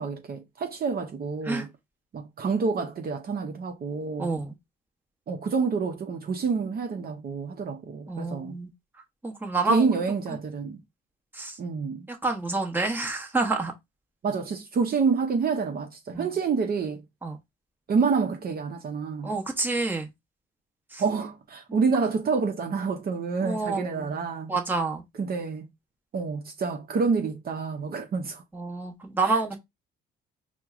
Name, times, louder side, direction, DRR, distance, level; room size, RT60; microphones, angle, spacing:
voice 1, 0.0-1.7 2.1-4.3 5.3-8.6 9.7-10.8 11.6-12.1 14.2-17.0 17.9-19.3 21.0-24.5 25.2-25.7 26.1-28.4 29.2-29.6, right 5 dB, 50° right, 0.7 m, -28 dB
voice 2, 4.2-4.5 8.1-8.7 9.2-10.0 11.3-11.6 12.1-13.7 16.1-16.3 17.2-17.4 19.2-20.1 20.9-21.0 21.7-21.8 23.4-24.1 24.5-25.0 28.5-29.6, right 3 dB, 10° right, 1.1 m, -28 dB
4.5 x 2.2 x 3.6 m
cardioid pair, 90°, 20 cm